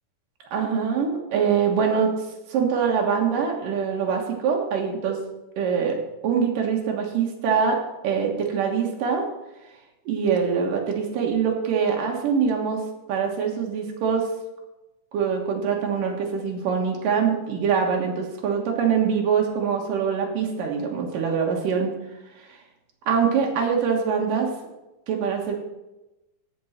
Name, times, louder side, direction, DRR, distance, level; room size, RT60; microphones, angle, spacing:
voice 1, 0.5-2.1 2.5-5.2 5.6-6.0 6.2-7.8 8.0-9.2 10.1-12.8 13.1-14.3 15.1-21.9 22.4-22.6 23.1-24.5 25.1-25.6, right 6 dB, 90° right, 1 dB, 3.1 m, -24 dB
15.5 x 5.4 x 5.8 m, 1.0 s
omnidirectional pair, 3.7 m